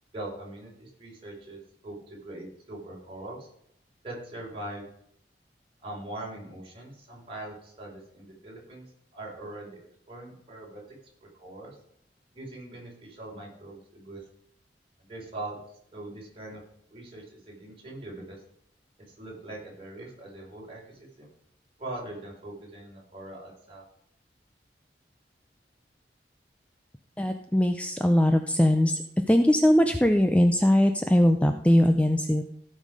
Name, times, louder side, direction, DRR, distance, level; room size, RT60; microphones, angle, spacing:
voice 1, 0.1-3.5 4.0-4.9 5.8-8.8 9.1-9.8 10.1-10.8 11.2-11.8 12.3-14.2 15.0-15.6 15.9-16.6 16.9-18.4 19.1-21.3 21.8-23.8, right 1 dB, 30° right, -4 dB, 5.0 m, -41 dB
voice 2, 27.2-29.0 29.3-32.4, left 1 dB, 10° left, 6 dB, 0.5 m, -21 dB
16.5 x 5.5 x 4.9 m, 0.71 s
head